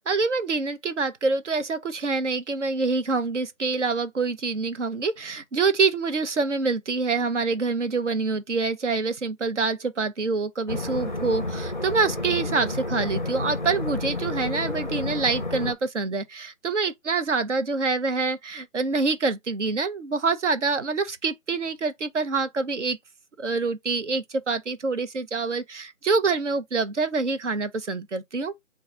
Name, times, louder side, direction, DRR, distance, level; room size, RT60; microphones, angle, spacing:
voice 1, 0.1-23.0 23.4-28.6, right 4 dB, 60° right, 0.8 m, -26 dB
sound 1, 10.7-15.7, left 2 dB, 35° left, 0.5 m, -30 dB
3.9 x 2.3 x 4.4 m
figure-of-eight pair, 160°, 41 cm